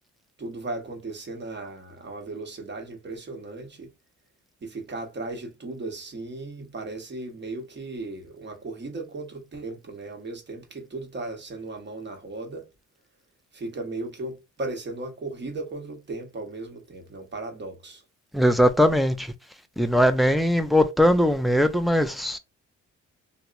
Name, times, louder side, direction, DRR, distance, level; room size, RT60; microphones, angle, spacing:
voice 1, 0.4-3.9 4.6-12.7 13.5-18.0, right 2 dB, 35° right, 1.0 m, -36 dB
voice 2, 18.3-19.3 19.8-22.4, equal, ahead, 0.4 m, -20 dB
2.8 x 2.1 x 2.4 m
cardioid pair, 90°, 30 cm